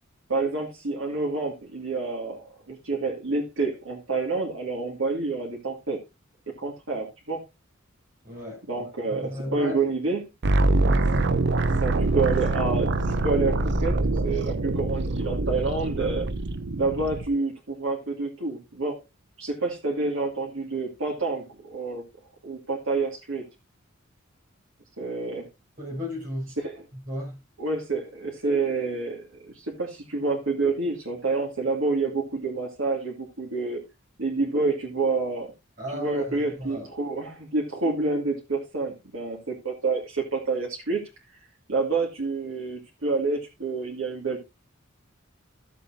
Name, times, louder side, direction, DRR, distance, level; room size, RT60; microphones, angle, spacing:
voice 1, 0.3-6.0 6.5-7.4 8.7-10.3 11.7-13.0 13.2-14.0 14.2-16.3 16.8-19.0 19.4-22.0 22.4-23.4 25.0-25.5 26.6-26.8 27.6-33.8 34.2-35.5 35.9-41.0 41.7-44.5, right 3 dB, 90° right, 2.4 m, -28 dB
voice 2, 8.2-9.8 10.7-11.3 25.8-26.5 27.1-27.4 35.8-36.9, equal, 40° right, 7.1 m, -35 dB
sound 1, 10.4-17.3, right 2 dB, 60° right, 0.7 m, -24 dB
14.5 x 7.0 x 2.8 m
head